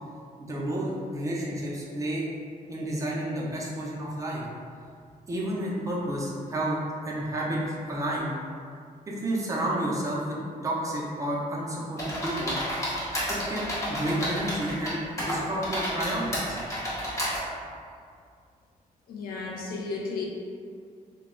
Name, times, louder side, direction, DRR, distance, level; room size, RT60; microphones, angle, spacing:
voice 1, 0.4-2.2 2.7-4.4 5.3-6.8 7.1-8.3 9.1-10.4 10.6-12.6 13.3-16.6, right 1 dB, 20° right, -5 dB, 0.4 m, -30 dB
sound 1, 12.0-14.9 15.2-17.4, equal, 20° left, 0.7 m, -31 dB
voice 2, 19.1-20.2, left 4 dB, 90° left, -1 dB, 0.5 m, -33 dB
2.2 x 2.0 x 3.6 m, 2.2 s
wide cardioid pair, 155°, 15 cm